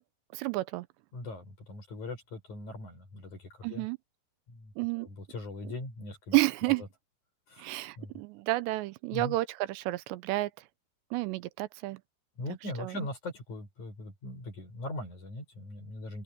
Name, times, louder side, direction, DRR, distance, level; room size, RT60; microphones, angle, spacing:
voice 1, 0.3-0.9 3.6-4.0 4.8-5.1 6.3-6.8 7.6-10.5 11.1-12.0 12.8-13.1, right 20 dB, 90° right, 2.9 m, -30 dB
voice 2, 1.1-3.9 4.5-4.7 5.0-6.4 6.7-6.8 7.5-7.7 8.0-8.1 9.1-9.4 12.4-16.2, left 2 dB, 40° left, 8.7 m, -40 dB
open air
omnidirectional pair, 5.0 m